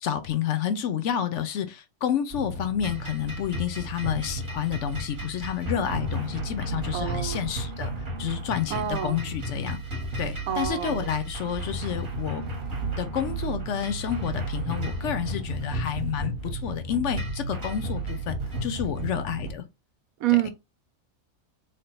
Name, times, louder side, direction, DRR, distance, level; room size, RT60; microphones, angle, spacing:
voice 1, 0.0-7.9 8.2-9.8 10.2-12.4 13.0-18.4 18.6-19.7, left 9 dB, 65° left, 0.8 m, -29 dB
sound 1, 2.3-19.5, right 1 dB, 40° right, 1.0 m, -33 dB
voice 2, 6.9-7.4 8.7-9.2 10.5-11.1 20.2-20.5, right 12 dB, 90° right, 1.1 m, -27 dB
3.3 x 2.2 x 4.3 m
omnidirectional pair, 1.4 m